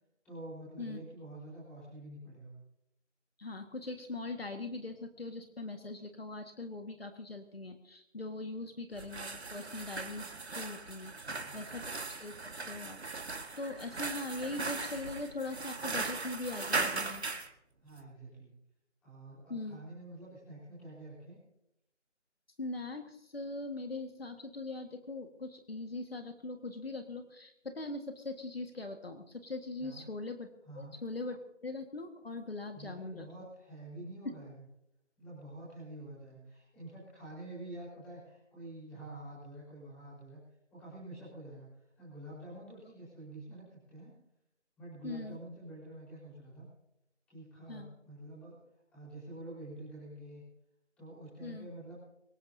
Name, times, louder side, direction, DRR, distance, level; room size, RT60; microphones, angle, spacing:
voice 1, 0.2-2.6 11.1-11.7 17.8-18.6 19.0-21.4 29.8-30.0 30.6-30.9 32.7-34.6 35.2-40.4 40.7-44.2 44.8-46.7 47.3-48.6 48.9-50.4 51.0-52.0, right 1 dB, 5° left, -8 dB, 4.5 m, -48 dB
voice 2, 3.4-11.1 11.5-11.8 12.2-12.3 12.7-17.2 19.5-19.8 22.6-30.5 30.8-33.3 45.0-45.4 47.7-47.9 51.4-51.7, left 2 dB, 55° left, 5 dB, 1.8 m, -41 dB
sound 1, 8.9-17.5, right 3 dB, 60° right, 1.8 m, -38 dB
24.5 x 15.5 x 2.8 m, 0.83 s
figure-of-eight pair, 170°, 36 cm